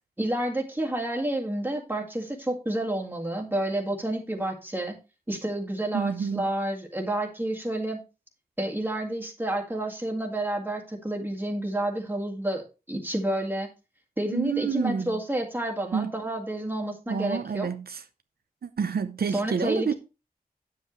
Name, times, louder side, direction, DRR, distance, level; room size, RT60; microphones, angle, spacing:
voice 1, 0.2-5.0 5.3-8.0 8.6-13.7 14.2-17.7 19.3-19.9, right 1 dB, 15° right, 1.9 m, -30 dB
voice 2, 5.9-6.4 14.3-15.2 15.9-16.1 17.1-18.0 18.6-19.9, right 6 dB, 80° right, 0.7 m, -28 dB
9.5 x 7.5 x 3.1 m
wide cardioid pair, 100°, 16 cm